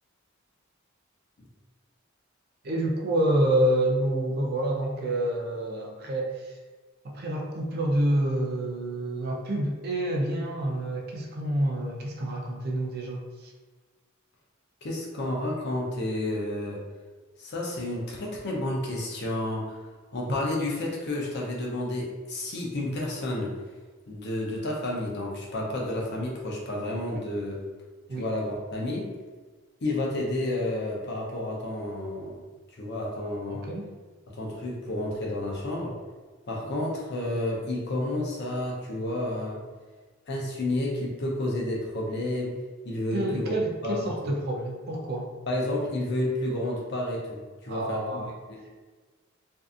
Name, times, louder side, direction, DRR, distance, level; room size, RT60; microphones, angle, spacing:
voice 1, 2.6-6.5 7.0-13.5 28.1-28.3 33.5-33.9 43.1-45.3 47.7-48.3, right 1 dB, 50° right, 0 dB, 0.4 m, -28 dB
voice 2, 14.8-16.8 17.4-19.7 20.1-23.6 24.1-27.6 28.1-29.1 29.8-32.4 32.8-33.7 34.3-36.0 36.5-39.6 40.3-42.6 42.8-43.6 43.8-44.3 45.5-48.2 48.5-48.6, left 1 dB, 55° left, -2 dB, 0.6 m, -30 dB
2.6 x 2.4 x 2.4 m, 1.3 s
head